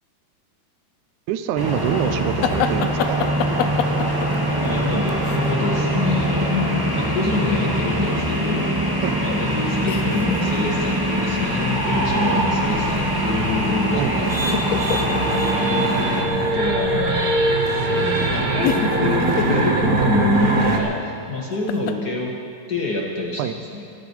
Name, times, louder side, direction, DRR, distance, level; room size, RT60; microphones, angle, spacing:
voice 1, 1.3-3.3 9.0-9.1 14.0-14.3 23.4-23.5, right 10 dB, 75° right, 10 dB, 1.9 m, -25 dB
sound 1, 1.6-16.2, equal, 35° right, 0.3 m, -23 dB
sound 2, 2.4-5.5 9.9-10.8 11.1-11.5 12.9-13.5 13.8-15.6 16.1-16.2 17.7-17.8 18.6-19.7 21.7-21.9, left 8 dB, 85° left, 1.5 m, -27 dB
voice 2, 4.6-8.7 9.2-14.9 15.5-17.3 17.9-22.3 22.7-23.8, left 3 dB, 45° left, -2 dB, 1.3 m, -26 dB
sound 3, 9.3-20.8, right 2 dB, 55° right, 1.0 m, -23 dB
19.5 x 14.0 x 4.5 m, 2.5 s
omnidirectional pair, 3.8 m